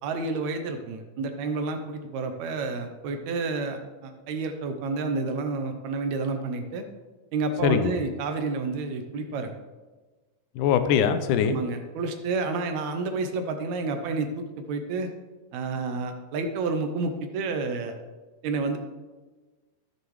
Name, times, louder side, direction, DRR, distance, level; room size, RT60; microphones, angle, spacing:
voice 1, 0.0-6.8 7.3-9.6 11.4-15.1 15.5-17.9 18.4-18.8, right 3 dB, 75° right, 6 dB, 1.9 m, -30 dB
voice 2, 7.6-7.9 10.6-11.6, left 8 dB, 80° left, 10 dB, 2.1 m, -22 dB
14.5 x 6.6 x 3.2 m, 1.3 s
omnidirectional pair, 3.7 m